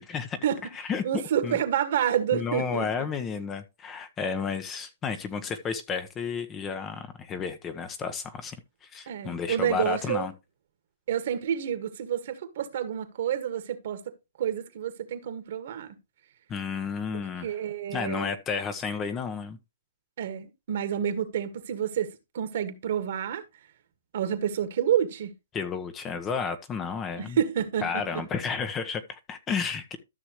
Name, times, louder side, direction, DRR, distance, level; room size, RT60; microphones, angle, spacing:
voice 1, 0.0-0.4 0.7-1.0 1.4-1.6 2.3-8.6 8.9-10.3 16.5-17.5 17.9-19.6 25.5-27.4 27.8-30.0, left 6 dB, 20° left, 1.1 m, -32 dB
voice 2, 1.0-3.1 9.1-10.3 11.1-16.0 17.1-18.4 20.2-23.4 24.1-25.3 27.2-28.3, right 9 dB, 60° right, 1.8 m, -29 dB
13.5 x 6.2 x 3.1 m
hypercardioid pair, 135°, 0 cm